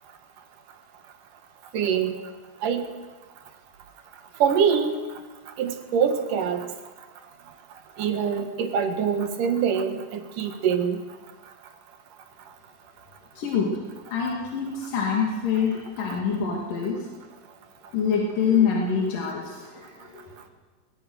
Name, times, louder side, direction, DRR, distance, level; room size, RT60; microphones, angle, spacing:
voice 1, 1.7-2.2 2.6-2.8 4.4-5.0 5.6-6.7 8.0-11.0, right 7 dB, 75° right, 7 dB, 3.2 m, -24 dB
voice 2, 13.4-13.7 14.1-17.0 17.9-20.3, left 6 dB, 80° left, -2 dB, 4.2 m, -25 dB
22.5 x 21.0 x 6.5 m, 1.3 s
omnidirectional pair, 3.8 m